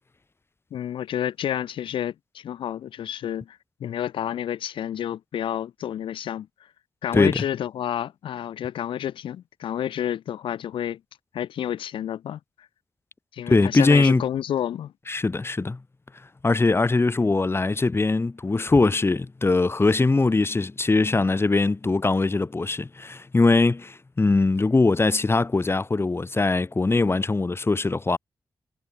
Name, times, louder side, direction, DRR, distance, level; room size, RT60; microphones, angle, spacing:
voice 1, 0.7-6.7 7.0-11.0 11.3-12.7 13.3-14.9, left 10 dB, 90° left, 4.7 m, -30 dB
voice 2, 13.5-14.2 15.1-15.8 16.4-28.2, left 3 dB, 30° left, 1.2 m, -21 dB
cardioid pair, 55°, 8 cm